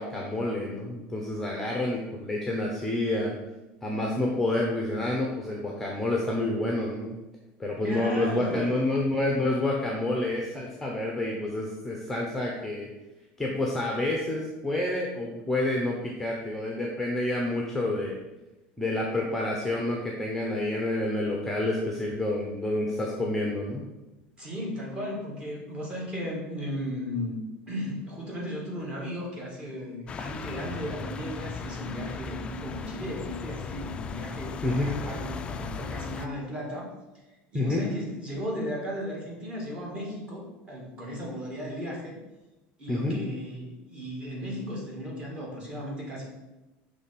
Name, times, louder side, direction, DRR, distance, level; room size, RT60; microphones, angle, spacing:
voice 1, 0.0-3.3 3.8-7.1 7.6-12.9 13.4-18.2 18.8-23.9 34.6-35.0 37.5-37.8 42.9-43.2, left 1 dB, 5° left, -1 dB, 0.8 m, -28 dB
voice 2, 7.8-9.0 24.4-27.4 27.7-36.9 37.5-42.2 42.8-46.3, equal, 20° right, -3 dB, 1.9 m, -35 dB
sound 1, 30.1-36.3, left 5 dB, 25° left, 0.3 m, -37 dB
6.2 x 3.3 x 5.8 m, 1.0 s
cardioid pair, 155°, 5 cm